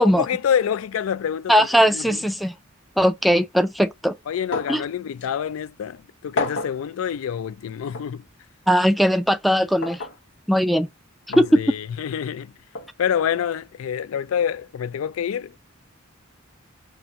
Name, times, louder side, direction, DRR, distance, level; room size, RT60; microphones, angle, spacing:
voice 1, 0.0-2.2 4.3-8.2 11.3-12.5 13.0-15.6, left 8 dB, 80° left, 0.3 m, -27 dB
voice 2, 1.5-2.5 3.0-4.2 4.7-4.8 8.7-10.0 10.5-10.9 11.4-11.6, equal, ahead, 0.3 m, -19 dB
sound 1, 4.5-4.9 5.2-5.3 6.4-6.8 7.9-8.1 9.8-10.2 11.3-11.5 12.7-12.9, left 2 dB, 60° left, 1.0 m, -29 dB
5.8 x 2.0 x 2.4 m
head